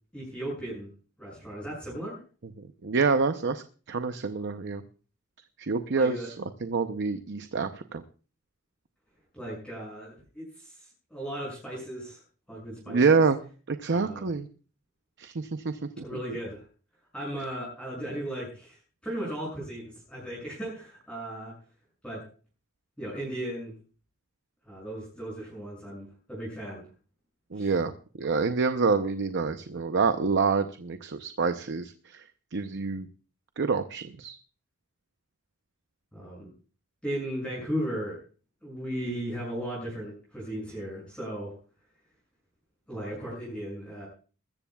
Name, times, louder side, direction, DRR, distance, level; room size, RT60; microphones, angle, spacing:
voice 1, 0.1-0.9 1.2-2.2 5.9-6.3 9.3-12.2 12.5-13.2 13.9-14.3 16.0-16.6 17.1-21.5 22.0-22.2 23.0-23.7 24.6-26.8 27.5-27.7 36.1-36.5 37.0-38.2 38.6-41.5 42.9-44.1, right 1 dB, 5° left, -5 dB, 6.8 m, -36 dB
voice 2, 2.8-4.8 5.6-6.3 6.6-8.0 12.9-13.4 13.7-14.5 15.2-16.2 27.5-27.9 28.2-32.2 32.5-33.1 33.6-34.4, right 4 dB, 55° right, 9 dB, 0.7 m, -27 dB
21.5 x 14.0 x 2.3 m, 0.38 s
head